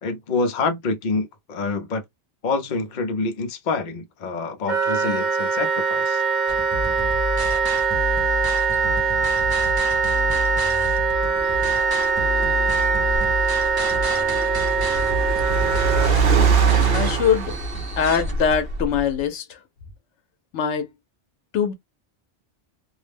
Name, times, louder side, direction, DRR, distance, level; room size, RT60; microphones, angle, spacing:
voice 1, 0.0-2.0 2.4-6.2, left 3 dB, 50° left, 0.7 m, -26 dB
Wind instrument woodwind instrument, 4.7-16.1, right 5 dB, 45° right, 1.0 m, -22 dB
sound 1, 6.5-18.3, left 2 dB, 25° right, 0.5 m, -29 dB
Car, 11.2-19.2, right 6 dB, 65° right, 0.8 m, -24 dB
voice 2, 16.9-17.5 18.0-19.6 20.5-20.9 21.5-21.7, left 7 dB, 85° left, 1.0 m, -22 dB
2.5 x 2.0 x 3.3 m
omnidirectional pair, 1.2 m